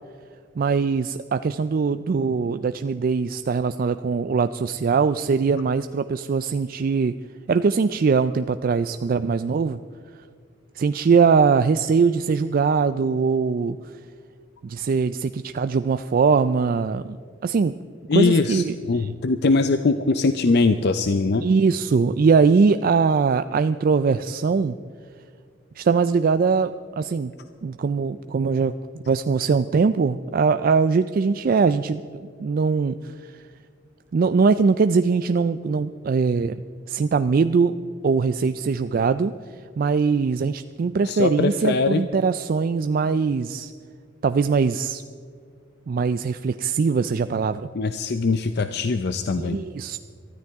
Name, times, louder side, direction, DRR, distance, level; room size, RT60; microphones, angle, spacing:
voice 1, 0.6-7.1 7.5-9.8 10.8-13.8 14.6-17.2 17.4-17.7 18.1-19.1 21.4-24.8 25.8-27.3 27.6-28.7 29.1-32.0 32.4-33.4 34.1-36.6 36.9-37.8 38.0-39.3 39.8-43.7 44.2-45.0 45.9-47.6 49.4-50.0, right 5 dB, 50° right, 11 dB, 0.4 m, -21 dB
voice 2, 18.1-21.5 41.0-42.0 47.7-49.6, left 3 dB, 60° left, 9 dB, 0.5 m, -21 dB
23.0 x 13.0 x 3.6 m, 2.2 s
head